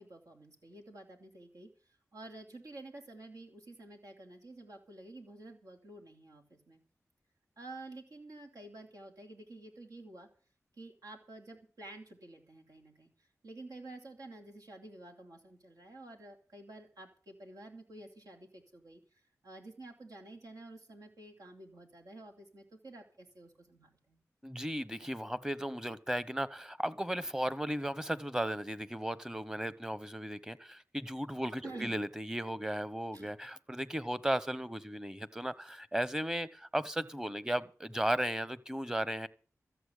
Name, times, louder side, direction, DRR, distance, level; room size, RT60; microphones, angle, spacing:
voice 1, 0.0-6.8 7.6-10.3 10.8-13.1 13.4-24.2 31.6-31.9 33.1-33.3, right 2 dB, 80° right, 3.1 m, -50 dB
voice 2, 24.4-39.3, right 1 dB, 10° right, 1.1 m, -35 dB
14.0 x 7.8 x 8.3 m
cardioid pair, 45°, 6 cm